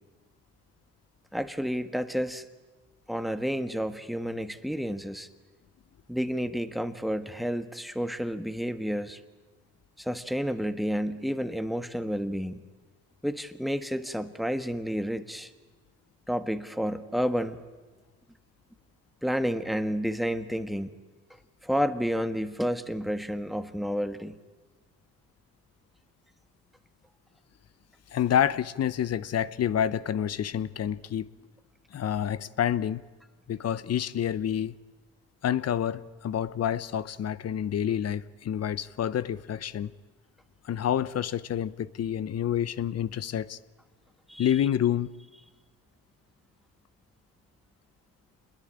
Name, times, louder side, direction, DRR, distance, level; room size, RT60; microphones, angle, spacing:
voice 1, 1.3-2.5 3.1-5.3 6.1-9.2 10.0-12.6 13.2-15.5 16.3-17.6 19.2-20.9 21.6-24.4 44.3-44.5, equal, ahead, 1.5 m, -30 dB
voice 2, 28.1-31.3 31.9-33.0 33.5-34.7 35.4-39.9 40.6-43.6 44.4-45.1, left 10 dB, 55° left, 0.9 m, -28 dB
26.5 x 21.0 x 8.8 m
cardioid pair, 90°, 30 cm